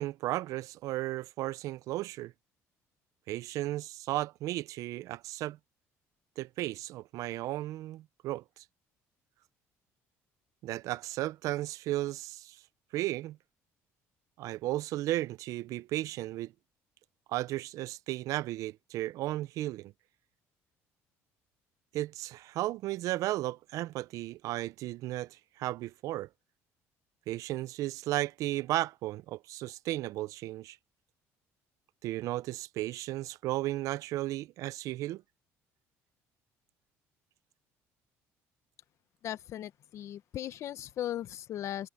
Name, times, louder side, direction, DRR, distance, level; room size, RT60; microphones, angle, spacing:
voice 1, 0.0-2.3 3.3-5.6 6.4-8.6 10.6-12.6 12.9-13.4 14.4-16.5 17.3-19.9 21.9-26.3 27.3-30.8 32.0-35.2, right 16 dB, 70° right, 0.5 m, -34 dB
voice 2, 39.2-41.9, left 12 dB, 55° left, 0.9 m, -37 dB
cardioid pair, 110°, 6 cm